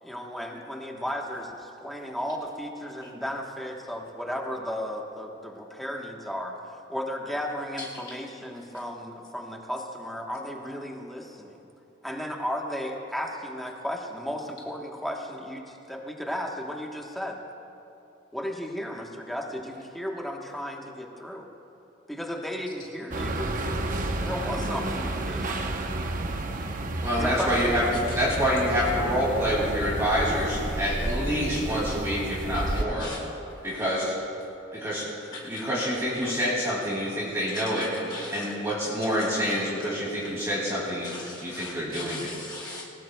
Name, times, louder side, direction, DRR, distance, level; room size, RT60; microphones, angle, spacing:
voice 1, 0.0-6.6 6.9-11.6 12.0-17.4 18.3-21.5 22.1-23.5 24.2-25.6 27.2-27.5, equal, ahead, 0 dB, 1.1 m, -34 dB
voice 2, 7.8-8.3 8.6-8.8 24.6-24.7 28.1-28.2 32.5-33.9 35.3-35.8 36.2-36.3 37.3-38.5 39.2-39.3 40.2-40.3 41.0-42.8, left 2 dB, 20° left, -3 dB, 0.9 m, -41 dB
sound 1, 23.1-32.8, right 1 dB, 45° right, 0.8 m, -31 dB
voice 3, 27.0-33.1 33.6-34.1 34.7-35.1 35.5-37.9 38.3-41.1 41.4-42.3, equal, 15° right, -7 dB, 2.4 m, -27 dB
20.0 x 19.0 x 2.2 m, 2.8 s
head